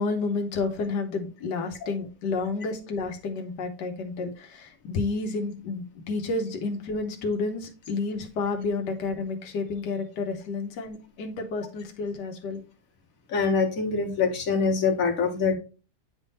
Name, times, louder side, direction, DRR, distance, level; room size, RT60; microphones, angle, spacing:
voice 1, 0.0-12.6, left 3 dB, 90° left, 4 dB, 1.6 m, -30 dB
voice 2, 13.3-15.6, left 5 dB, 55° left, 2 dB, 1.8 m, -24 dB
9.2 x 3.6 x 4.0 m, 0.33 s
omnidirectional pair, 1.8 m